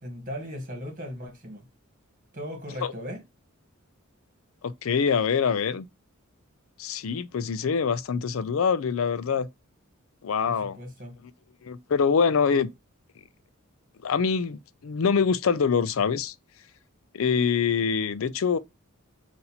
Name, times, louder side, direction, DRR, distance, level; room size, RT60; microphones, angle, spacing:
voice 1, 0.0-1.7 2.3-3.2 10.5-11.2, equal, 40° right, 1.9 m, -37 dB
voice 2, 4.6-5.8 6.8-9.5 10.2-10.8 11.6-12.7 14.0-16.3 17.1-18.6, left 6 dB, 70° left, 0.4 m, -24 dB
4.0 x 2.6 x 4.2 m
head